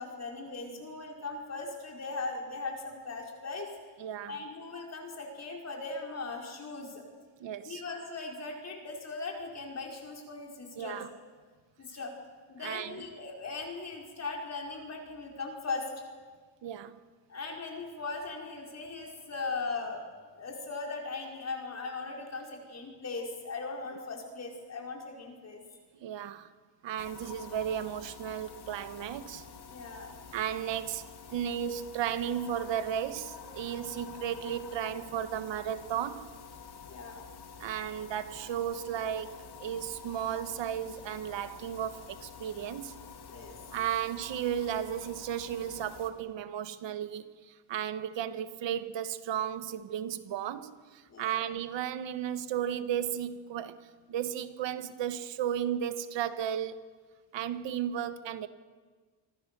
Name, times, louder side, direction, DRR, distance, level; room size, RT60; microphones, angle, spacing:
voice 1, 0.0-3.7 4.3-7.0 7.6-11.0 11.8-12.1 12.5-15.9 17.3-20.0 20.3-25.6 29.7-30.1 36.9-37.2 43.3-43.6 51.1-51.4, left 3 dB, 35° left, 5.1 m, -39 dB
voice 2, 4.0-4.3 7.4-7.8 10.8-11.1 12.6-13.0 16.6-17.0 26.0-26.5 26.8-29.4 30.3-36.3 37.6-43.0 43.7-56.9 57.3-58.5, right 9 dB, 85° right, 1.5 m, -34 dB
sound 1, 27.0-46.1, left 6 dB, 60° left, 2.8 m, -48 dB
27.5 x 23.5 x 6.9 m
cardioid pair, 135°, 43 cm